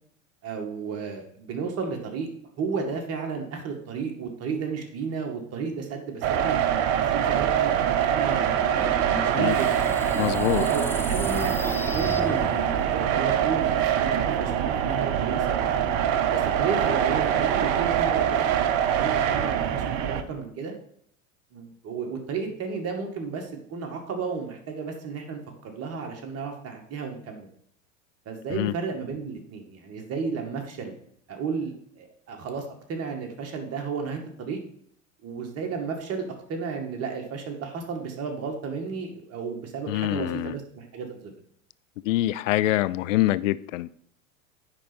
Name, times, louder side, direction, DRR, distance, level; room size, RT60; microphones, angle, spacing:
voice 1, 0.4-2.3 2.6-8.6 9.2-9.7 10.5-10.8 11.1-15.6 16.3-18.5 19.0-20.7 21.5-27.5 28.3-30.9 31.3-32.6 32.9-34.6 35.2-41.3, right 5 dB, 35° right, 3 dB, 2.1 m, -33 dB
sound 1, 6.2-20.2, right 9 dB, 55° right, 0.9 m, -24 dB
sound 2, 8.7-13.0, left 3 dB, 5° left, 0.4 m, -36 dB
voice 2, 10.2-10.7 28.5-28.7 39.9-40.6 42.0-43.9, left 15 dB, 70° left, 17 dB, 0.5 m, -25 dB
9.8 x 4.2 x 5.3 m, 0.68 s
hypercardioid pair, 85°, 40 cm